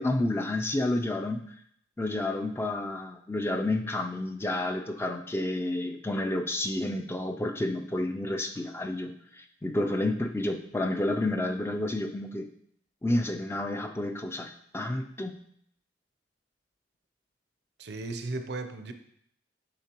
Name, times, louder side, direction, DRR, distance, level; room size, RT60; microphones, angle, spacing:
voice 1, 0.0-1.5 2.0-12.5 13.0-15.4, left 1 dB, 15° left, 5 dB, 0.3 m, -30 dB
voice 2, 17.8-18.9, right 2 dB, 60° right, 8 dB, 0.5 m, -35 dB
9.3 x 3.7 x 2.9 m, 0.69 s
head